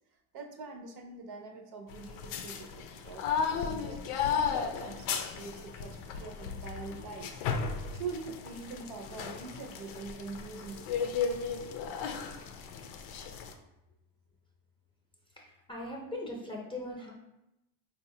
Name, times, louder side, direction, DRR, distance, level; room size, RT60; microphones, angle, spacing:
voice 1, 0.3-7.4 7.9-11.2, right 4 dB, 55° right, 2 dB, 0.6 m, -44 dB
sound 1, 1.9-13.5, left 6 dB, 85° left, 0.5 m, -35 dB
voice 2, 15.3-17.1, left 1 dB, 10° left, -2 dB, 0.6 m, -40 dB
3.9 x 2.3 x 2.7 m, 0.89 s
supercardioid pair, 105°, 46 cm